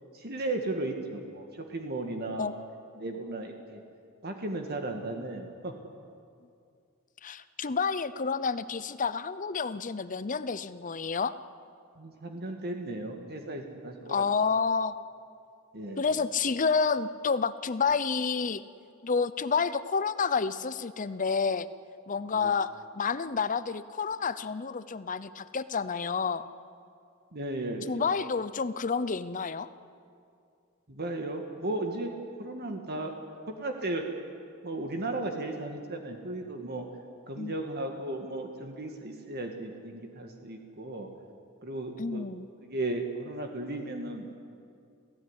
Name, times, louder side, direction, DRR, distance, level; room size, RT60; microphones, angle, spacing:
voice 1, 0.1-2.5 3.0-3.8 4.2-5.7 12.0-14.3 15.7-16.0 22.3-22.5 27.3-28.1 30.9-32.1 32.4-33.1 33.5-34.0 34.6-36.9 37.3-41.1 41.6-42.3 42.6-44.4, right 2 dB, 50° right, 4 dB, 1.9 m, -35 dB
voice 2, 7.2-11.3 14.1-14.9 16.0-18.6 19.0-21.7 22.1-26.5 27.9-29.7 37.4-37.5 42.0-42.5, left 5 dB, 40° left, 15 dB, 0.7 m, -29 dB
27.0 x 16.0 x 9.8 m, 2.4 s
head